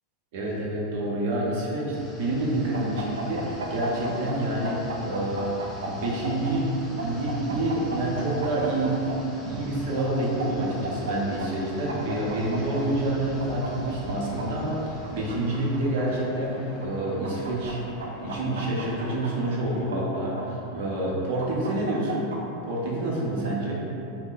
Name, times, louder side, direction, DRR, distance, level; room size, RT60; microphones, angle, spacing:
voice 1, 0.3-5.5 5.8-8.9 9.2-17.8 18.2-22.2 22.7-23.8, right 1 dB, 65° right, -4 dB, 0.8 m, -28 dB
sound 1, 1.9-15.8, right 1 dB, 15° right, 0.6 m, -43 dB
sound 2, 2.7-4.4 4.6-6.5 7.0-9.2 10.0-11.1 11.4-11.5 11.9-12.8 13.4-14.5 15.0-16.0 16.8-17.7 18.0-19.3 19.9-20.9 21.4-22.4, right 3 dB, 90° right, 0.4 m, -35 dB
Mechanisms, 3.1-19.8, left 1 dB, 45° left, 0.5 m, -44 dB
2.8 x 2.1 x 3.9 m, 2.9 s
hypercardioid pair, 110°, 0 cm